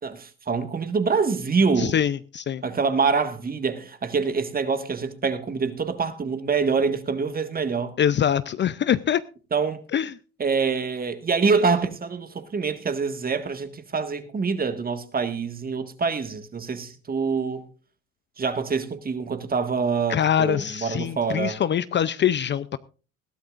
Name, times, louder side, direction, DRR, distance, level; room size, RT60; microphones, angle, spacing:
voice 1, 0.0-1.9 2.6-8.0 9.5-9.8 10.4-17.6 18.4-21.6, right 5 dB, 30° right, 1.7 m, -25 dB
voice 2, 1.8-2.6 8.0-9.2 9.9-10.1 20.1-22.8, left 9 dB, 35° left, 0.5 m, -23 dB
20.5 x 13.0 x 2.5 m
supercardioid pair, 90°, 31 cm